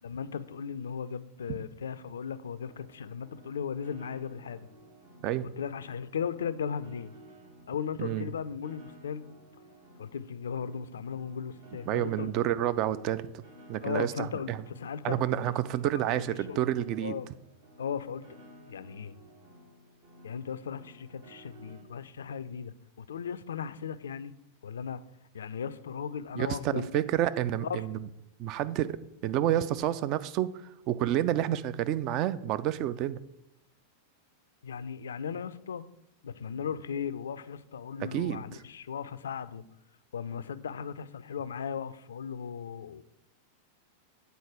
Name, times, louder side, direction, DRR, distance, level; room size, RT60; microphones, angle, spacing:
voice 1, 0.0-4.7 5.6-7.1 7.7-9.2 10.0-12.5 13.8-15.2 15.5-15.6 15.9-16.6 17.0-17.3 17.8-18.3 18.7-19.2 20.2-24.3 24.6-25.0 25.3-27.0 27.6-27.8 34.6-35.8 36.2-39.6 40.1-43.0, left 7 dB, 65° left, 14 dB, 0.3 m, -37 dB
Piano, 2.6-21.8, equal, 65° right, 1.5 m, -55 dB
voice 2, 8.0-8.3 11.9-13.4 13.7-14.6 15.0-17.2 26.4-28.0 28.4-33.2 38.0-38.4, right 12 dB, 40° right, 15 dB, 0.3 m, -29 dB
8.1 x 4.1 x 4.7 m, 0.84 s
figure-of-eight pair, 90°, 0 cm